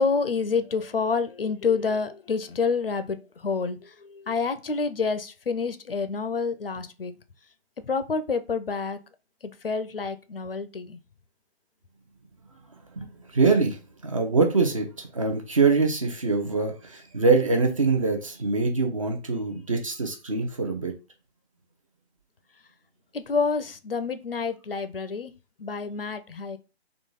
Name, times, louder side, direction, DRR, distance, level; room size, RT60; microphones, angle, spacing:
voice 1, 0.0-7.1 7.9-9.0 9.4-11.0 23.1-25.3 25.6-26.6, left 5 dB, 60° left, 0.5 m, -28 dB
voice 2, 13.0-20.9, right 4 dB, 30° right, 0.6 m, -24 dB
3.8 x 2.3 x 3.8 m
figure-of-eight pair, 145°, 33 cm